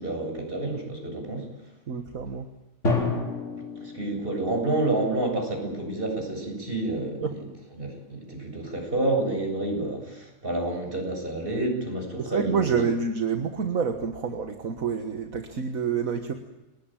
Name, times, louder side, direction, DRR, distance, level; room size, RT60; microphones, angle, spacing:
voice 1, 0.0-1.5 3.8-7.5 7.8-12.8, right 2 dB, 40° right, 2 dB, 7.9 m, -29 dB
voice 2, 1.9-2.5 7.2-7.4 12.2-16.3, right 6 dB, 70° right, 6 dB, 1.9 m, -28 dB
Drum, 2.8-4.8, left 3 dB, 60° left, 4.6 m, -29 dB
29.5 x 20.0 x 9.2 m, 1.1 s
omnidirectional pair, 1.5 m